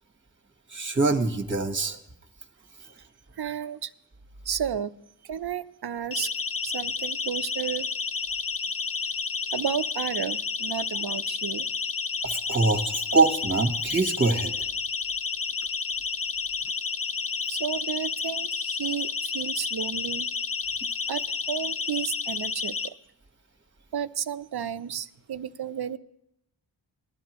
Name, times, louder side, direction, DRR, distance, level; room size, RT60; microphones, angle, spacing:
voice 1, 0.7-2.0 12.2-14.5, right 3 dB, 25° right, 5 dB, 1.3 m, -24 dB
voice 2, 3.4-3.9 4.5-4.9 5.2-6.3 6.6-7.9 9.5-11.7 17.1-20.3 21.1-22.7 23.9-26.0, right 8 dB, 60° right, 13 dB, 0.7 m, -32 dB
Siren, 6.1-22.9, left 5 dB, 30° left, 0.6 m, -31 dB
20.0 x 11.5 x 3.0 m, 0.80 s
cardioid pair, 55°, 44 cm